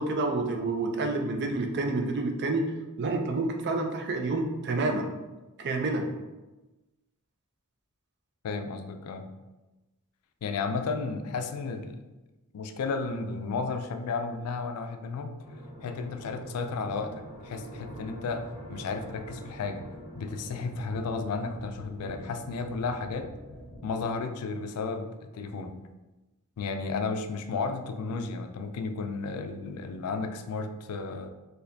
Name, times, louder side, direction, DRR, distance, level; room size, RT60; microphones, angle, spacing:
voice 1, 0.0-2.6 3.0-5.1 5.6-6.1, right 2 dB, 50° right, 4 dB, 0.4 m, -28 dB
voice 2, 8.4-9.2 10.4-12.0 12.5-15.3 15.8-19.8 20.2-23.3 23.8-25.8 26.6-31.3, left 4 dB, 75° left, 7 dB, 0.4 m, -33 dB
sound 1, 15.4-23.9, equal, 25° right, 1.2 m, -45 dB
4.1 x 2.6 x 2.6 m, 1.1 s
head